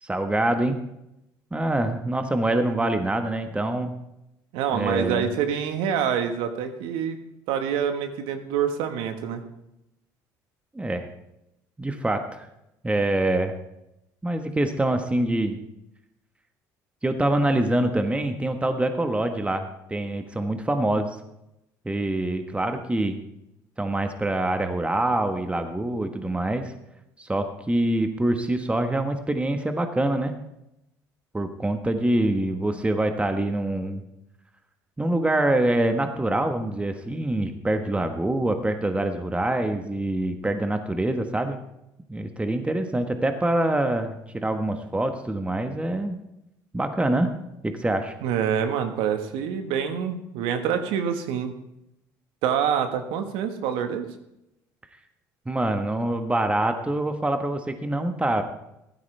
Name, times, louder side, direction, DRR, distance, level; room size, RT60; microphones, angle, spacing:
voice 1, 0.0-0.8 1.5-3.9 4.7-5.3 10.7-11.1 11.8-12.5 12.8-13.5 14.2-15.6 17.0-21.1 21.8-23.2 23.8-26.7 27.2-30.3 31.3-34.0 35.0-41.6 42.1-46.2 46.7-47.3 47.6-48.1 55.5-58.4, right 1 dB, 15° right, 7 dB, 1.4 m, -25 dB
voice 2, 4.5-7.2 7.5-9.4 48.2-51.5 52.4-54.1, right 8 dB, 75° right, 7 dB, 1.5 m, -26 dB
15.0 x 12.5 x 3.4 m, 0.85 s
hypercardioid pair, 65°, 9 cm